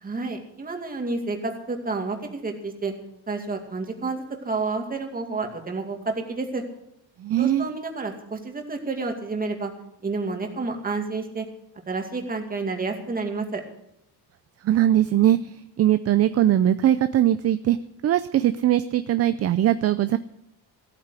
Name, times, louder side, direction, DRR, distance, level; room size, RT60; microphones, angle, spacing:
voice 1, 0.0-2.9 3.3-6.6 7.4-9.7 10.0-11.5 11.9-13.6, right 3 dB, 20° right, 3 dB, 2.3 m, -30 dB
voice 2, 7.2-7.7 14.6-17.8 18.0-20.2, right 12 dB, 40° right, 12 dB, 0.5 m, -21 dB
15.0 x 9.0 x 8.3 m, 0.81 s
cardioid pair, 160°, 40 cm